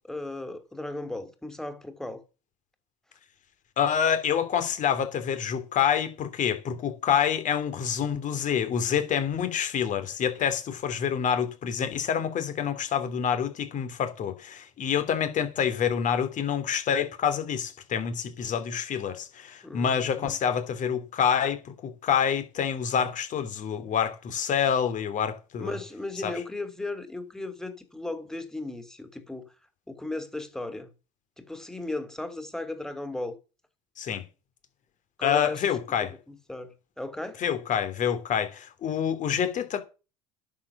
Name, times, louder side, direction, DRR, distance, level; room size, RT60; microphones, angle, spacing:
voice 1, 0.1-2.2 19.6-20.3 25.6-29.5 29.9-30.9 31.4-33.3 35.2-35.6 36.3-37.4, left 2 dB, 5° left, 3.2 m, -36 dB
voice 2, 3.8-25.8 26.2-26.3 34.0-34.2 35.2-36.1 37.4-39.8, left 8 dB, 45° left, 3.0 m, -27 dB
11.0 x 7.3 x 7.2 m
hypercardioid pair, 80°, 17 cm